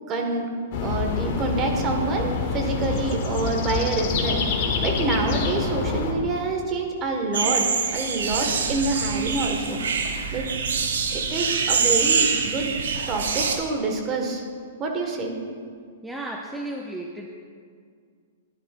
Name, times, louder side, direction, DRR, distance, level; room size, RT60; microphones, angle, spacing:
voice 1, 0.1-0.5 0.8-4.4 4.8-7.7 7.9-9.8 10.3-10.5 11.1-12.7 13.1-14.4 14.8-15.3, right 3 dB, 30° right, 2 dB, 1.6 m, -27 dB
sound 1, 0.7-6.1, left 4 dB, 50° left, 1.4 m, -26 dB
sound 2, 7.3-13.6, right 5 dB, 75° right, 1.0 m, -25 dB
voice 2, 16.0-17.3, right 1 dB, 5° right, 0 dB, 0.7 m, -33 dB
13.0 x 10.5 x 2.5 m, 2.1 s
hypercardioid pair, 120°, 0 cm